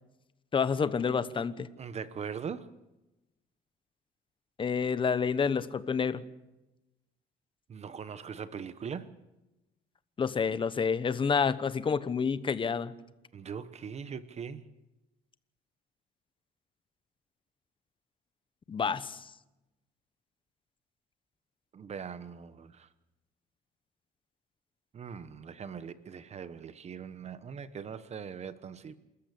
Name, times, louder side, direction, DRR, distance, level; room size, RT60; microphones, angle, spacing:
voice 1, 0.5-1.7 4.6-6.2 10.2-12.9 18.7-19.2, left 6 dB, 30° left, 1.1 m, -29 dB
voice 2, 1.8-2.7 7.7-9.1 13.3-14.7 21.7-22.9 24.9-29.0, right 7 dB, 40° right, 1.0 m, -41 dB
27.5 x 14.0 x 8.3 m
cardioid pair, 110°, 17 cm